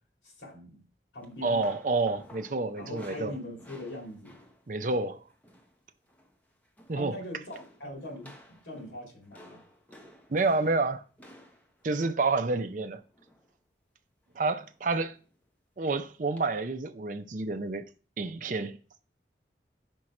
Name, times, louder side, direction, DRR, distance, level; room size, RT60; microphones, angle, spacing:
voice 1, 0.2-0.8 1.1-1.7 2.8-4.4 6.9-9.7, left 1 dB, 85° left, 2.2 m, -41 dB
sound 1, 1.2-5.8 6.0-6.4 6.6-7.1 7.5-13.5 14.4-14.8 15.1-15.3 16.4-16.5, left 1 dB, 10° left, 0.7 m, -55 dB
voice 2, 1.4-3.4 4.7-5.2 6.9-7.2 10.3-11.0 11.8-13.0 14.3-15.2 15.8-17.8 18.2-18.8, right 3 dB, 45° right, 0.5 m, -29 dB
5.3 x 4.5 x 4.8 m
head